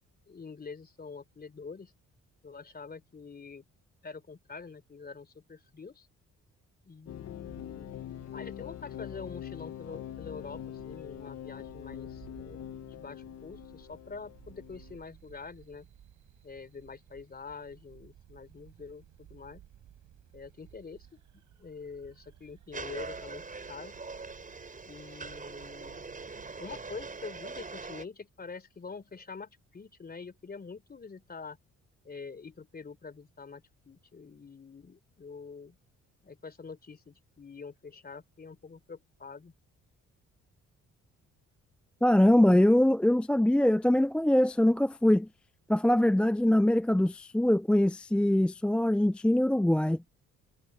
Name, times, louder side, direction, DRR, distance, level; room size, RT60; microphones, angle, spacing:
voice 1, 0.3-1.9 2.4-3.6 4.0-6.1 6.8-7.9 8.3-15.9 16.4-19.6 20.3-21.2 21.6-23.4 23.7-24.0 24.8-26.0 26.6-31.6 32.0-35.8 36.2-39.5, left 4 dB, 30° left, 3.5 m, -45 dB
sound 1, 7.1-15.0, left 11 dB, 60° left, 0.9 m, -43 dB
sound 2, 7.4-27.0, right 11 dB, 75° right, 7.9 m, -57 dB
sound 3, 22.7-28.1, right 4 dB, 25° right, 5.9 m, -42 dB
voice 2, 42.0-45.3 45.7-50.0, left 1 dB, 5° left, 0.3 m, -23 dB
cardioid pair, 90°, 30 cm